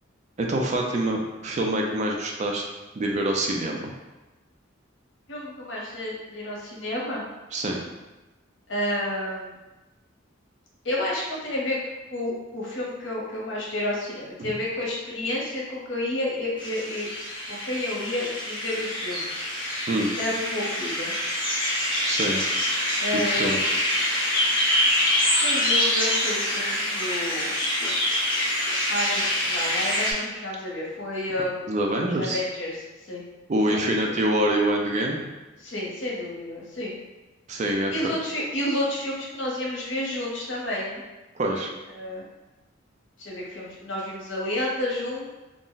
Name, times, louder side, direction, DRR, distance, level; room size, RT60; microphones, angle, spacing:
voice 1, 0.4-2.6 3.0-3.9 7.5-7.8 14.4-14.5 19.9-20.1 22.0-22.4 23.1-23.6 31.7-32.4 33.5-35.2 37.5-38.1 41.3-41.7, right 1 dB, 35° right, 0 dB, 0.4 m, -25 dB
voice 2, 5.3-7.2 8.7-9.5 10.8-11.8 12.1-17.1 17.5-19.5 20.2-21.2 23.0-23.6 25.3-27.5 28.9-31.6 32.2-33.2 33.7-34.1 35.6-37.0 37.9-41.0 41.9-42.2 43.2-45.3, left 1 dB, 65° left, -4 dB, 0.8 m, -30 dB
sound 1, 16.6-30.1, left 1 dB, 25° left, 0.8 m, -25 dB
2.4 x 2.0 x 3.8 m, 1.1 s
head